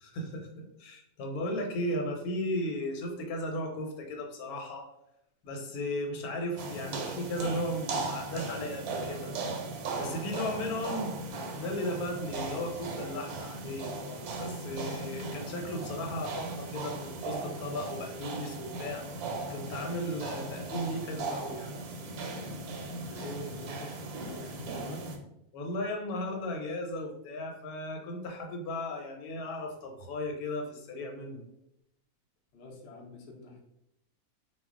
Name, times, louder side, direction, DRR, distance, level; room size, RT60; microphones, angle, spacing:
voice 1, 0.0-4.9 5.4-9.3 10.0-11.1 11.5-21.7 25.5-31.4, left 1 dB, 85° left, 2 dB, 1.1 m, -36 dB
sound 1, 6.6-25.2, right 3 dB, 80° right, 1.0 m, -38 dB
voice 2, 22.9-25.2 32.5-33.6, left 1 dB, 55° left, 0 dB, 0.7 m, -45 dB
2.4 x 2.2 x 3.5 m, 0.81 s
omnidirectional pair, 1.6 m